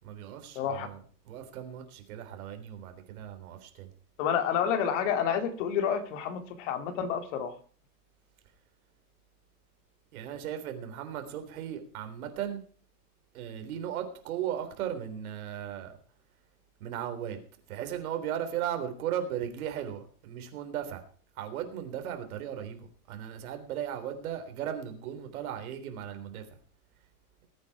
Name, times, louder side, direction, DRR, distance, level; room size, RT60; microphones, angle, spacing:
voice 1, 0.0-1.0 1.3-3.9 10.1-12.6 13.3-16.0 16.8-17.4 17.7-21.0 21.4-26.6, right 10 dB, 70° right, 7 dB, 3.6 m, -36 dB
voice 2, 0.5-0.9 4.2-7.5, left 8 dB, 55° left, 8 dB, 2.7 m, -29 dB
20.0 x 8.8 x 4.8 m, 0.43 s
supercardioid pair, 155°, 45 cm